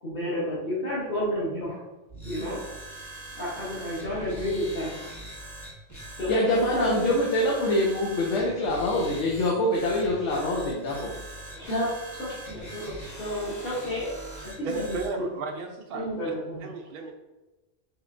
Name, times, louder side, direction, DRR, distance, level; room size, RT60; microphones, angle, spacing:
voice 1, 0.0-1.8 2.2-2.6 3.4-5.0 6.2-7.1 11.5-14.2 14.6-15.3 15.9-16.7, equal, 50° left, -9 dB, 1.3 m, -30 dB
sound 1, 2.1-15.1, right 1 dB, 15° left, 0.9 m, -42 dB
voice 2, 6.3-11.1, left 1 dB, 75° left, -2 dB, 1.0 m, -25 dB
voice 3, 14.6-16.3 16.6-17.1, right 3 dB, 60° right, 3 dB, 0.7 m, -34 dB
4.8 x 3.1 x 2.5 m, 1.1 s
omnidirectional pair, 1.2 m